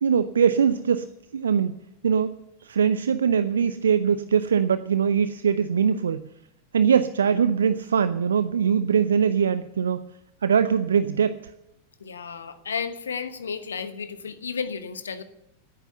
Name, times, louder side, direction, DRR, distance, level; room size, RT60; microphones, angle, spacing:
voice 1, 0.0-1.7 2.0-2.3 2.6-6.3 6.7-10.0 10.4-11.5, right 7 dB, 70° right, 13 dB, 0.5 m, -22 dB
voice 2, 12.0-15.2, left 6 dB, 70° left, 11 dB, 1.2 m, -33 dB
15.5 x 9.1 x 6.8 m, 0.82 s
figure-of-eight pair, 90°, 0 cm